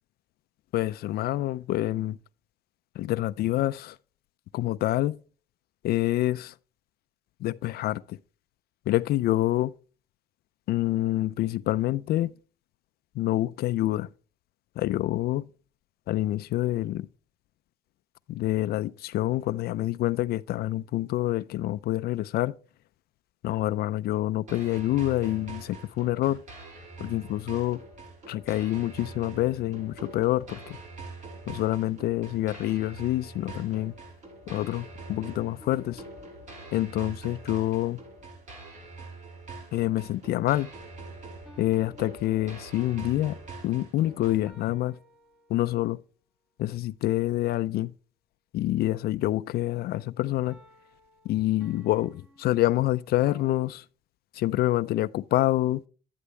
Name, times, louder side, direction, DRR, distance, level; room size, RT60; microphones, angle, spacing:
voice 1, 0.7-2.2 3.0-4.0 4.5-5.2 5.8-6.5 7.4-8.2 8.9-9.7 10.7-12.3 13.2-14.1 14.8-15.5 16.1-17.1 18.3-22.5 23.4-26.4 27.0-27.8 28.3-30.8 31.5-33.9 34.5-36.0 36.7-38.0 39.7-40.7 41.6-43.4 43.6-45.0 45.5-46.0 46.6-47.9 48.5-50.6 51.2-53.8 54.3-55.8, left 15 dB, 70° left, 0.5 m, -27 dB
sound 1, 24.5-44.5, right 3 dB, 45° right, 5.3 m, -44 dB
sound 2, 35.6-37.0 41.5-46.0 50.5-53.7, equal, 5° right, 2.9 m, -56 dB
11.5 x 9.6 x 3.2 m
cardioid pair, 110°, 17 cm